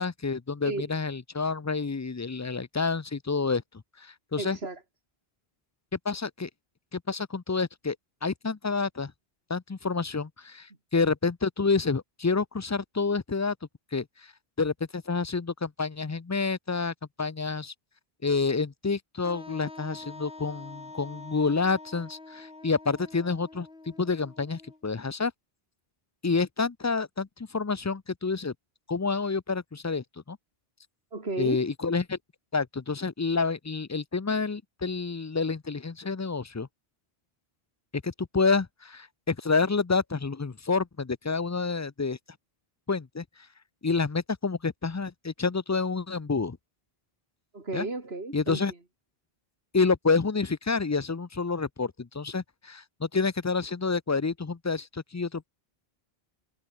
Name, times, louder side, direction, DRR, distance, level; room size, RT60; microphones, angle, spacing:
voice 1, 0.0-3.6 4.0-4.6 6.1-6.5 6.9-8.0 8.2-9.1 9.5-13.5 13.9-14.0 14.6-17.7 18.2-25.3 26.2-28.5 28.9-30.4 31.4-32.2 32.5-36.7 38.0-42.2 42.9-43.2 43.8-46.6 47.7-47.9 48.3-48.7 49.7-55.5, left 4 dB, 25° left, 0.4 m, -28 dB
voice 2, 4.4-4.8 31.1-31.6 47.5-48.6, right 3 dB, 80° right, 3.4 m, -33 dB
Wind instrument woodwind instrument, 19.2-25.0, left 3 dB, 75° left, 3.4 m, -46 dB
omnidirectional pair, 1.0 m